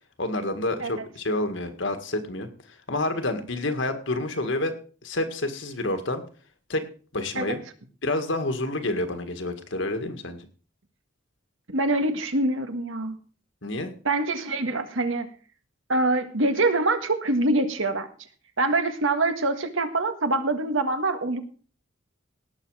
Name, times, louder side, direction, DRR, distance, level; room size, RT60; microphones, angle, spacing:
voice 1, 0.2-2.5 2.9-4.8 5.0-6.2 6.7-6.8 7.1-7.6 8.0-10.5 13.6-13.9, left 2 dB, 70° left, 7 dB, 1.9 m, -28 dB
voice 2, 11.7-13.2 14.1-15.3 15.9-18.1 18.6-21.4, right 2 dB, 85° right, 8 dB, 1.7 m, -24 dB
18.0 x 6.8 x 4.9 m, 0.40 s
head